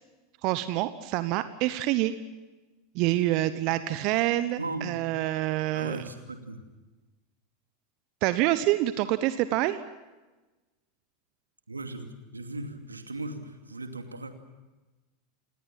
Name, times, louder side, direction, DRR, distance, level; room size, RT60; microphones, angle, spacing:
voice 1, 0.4-2.1 2.9-6.0 8.2-9.8, right 15 dB, 50° right, 13 dB, 1.0 m, -26 dB
voice 2, 4.6-5.0 5.7-6.6 11.7-14.3, right 2 dB, 85° right, 6 dB, 2.6 m, -37 dB
28.5 x 19.5 x 7.5 m, 1.2 s
figure-of-eight pair, 85°, 0 cm